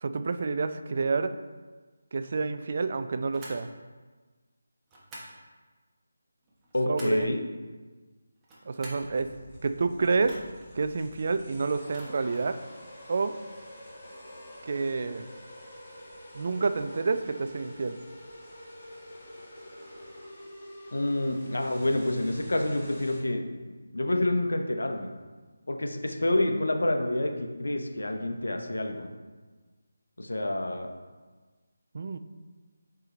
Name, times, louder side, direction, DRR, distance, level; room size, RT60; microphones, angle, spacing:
voice 1, 0.0-1.4 2.1-3.7 6.9-7.3 8.7-9.3 9.6-10.4 10.7-12.6 13.1-13.3 14.6-15.3 16.3-18.0 31.9-32.2, right 4 dB, 45° right, 10 dB, 0.4 m, -29 dB
sound 1, 3.3-3.7 4.9-5.4 6.4-7.3 8.4-9.1 10.2-10.7 11.8-12.5, right 1 dB, 15° right, 1.1 m, -47 dB
voice 2, 6.7-7.4 20.9-23.4 23.9-25.1 25.7-29.1 30.2-30.9, left 1 dB, 70° left, 4 dB, 0.9 m, -28 dB
sound 2, 8.9-23.2, left 1 dB, 25° left, 1.8 m, -47 dB
7.6 x 4.7 x 3.2 m, 1.3 s
figure-of-eight pair, 155°, 0 cm